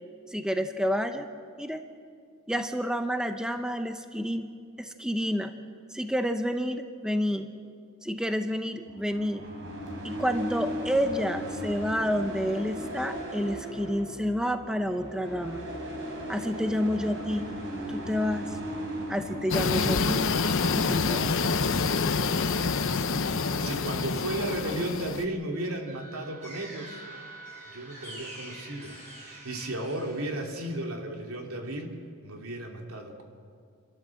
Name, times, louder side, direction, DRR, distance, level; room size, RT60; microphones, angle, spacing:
voice 1, 0.3-1.3 1.6-1.8 2.5-5.5 5.9-7.5 8.0-9.5 10.0-15.6 16.3-17.5 17.9-18.6 19.1-20.3 20.7-21.4, equal, 5° right, 7 dB, 0.7 m, -29 dB
sound 1, 8.9-19.9, equal, 60° right, 3.8 m, -37 dB
sound 2, 19.5-25.2, left 4 dB, 60° left, 0.9 m, -27 dB
voice 2, 23.6-27.0 27.7-31.9 32.2-33.2, right 1 dB, 75° right, 2 dB, 2.7 m, -34 dB
sound 3, 25.5-30.7, right 1 dB, 35° right, 5.6 m, -46 dB
29.5 x 12.5 x 7.6 m, 2.3 s
head